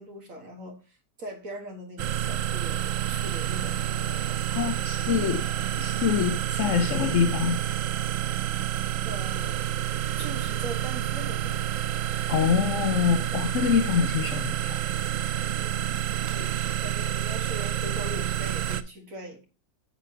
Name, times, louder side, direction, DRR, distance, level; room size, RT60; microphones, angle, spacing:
voice 1, 0.0-4.4 9.1-9.6 10.2-11.6 15.6-16.1 16.3-19.4, right 1 dB, 50° right, 1.9 m, -41 dB
sound 1, 2.0-18.8, right 11 dB, 80° right, 0.7 m, -29 dB
voice 2, 4.5-5.4 5.8-7.6 12.3-15.0, left 7 dB, 65° left, 0.7 m, -25 dB
9.0 x 7.1 x 2.8 m
omnidirectional pair, 1.9 m